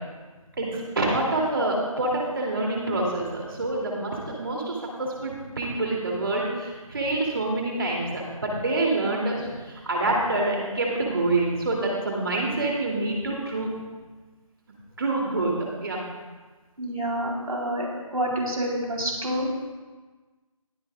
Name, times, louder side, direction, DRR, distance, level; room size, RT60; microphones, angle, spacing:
voice 1, 0.6-13.7 15.0-15.5 15.8-16.0, right 2 dB, 40° right, -2 dB, 3.0 m, -26 dB
voice 2, 16.8-17.9 18.1-19.7, equal, 80° right, -2 dB, 3.9 m, -28 dB
21.0 x 9.4 x 2.5 m, 1.3 s
figure-of-eight pair, 165°, 18 cm